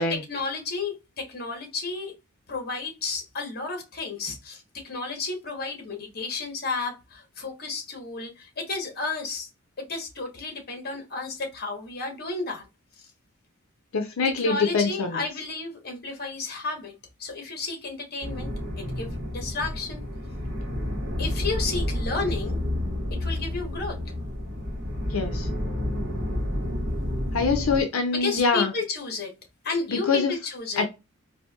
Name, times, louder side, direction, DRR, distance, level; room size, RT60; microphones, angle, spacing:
voice 1, 0.1-2.1 2.5-9.5 9.8-12.7 13.0-13.1 14.3-16.9 17.2-18.5 18.8-20.0 21.2-22.6 23.2-24.0 28.1-29.3 29.6-30.8, left 3 dB, 50° left, 1.1 m, -32 dB
voice 2, 13.9-15.2 25.1-25.5 27.3-28.7 29.9-30.3 30.8-30.9, left 4 dB, 70° left, 0.5 m, -24 dB
sound 1, 18.2-27.8, left 1 dB, 55° right, 1.3 m, -30 dB
4.2 x 2.6 x 2.3 m
head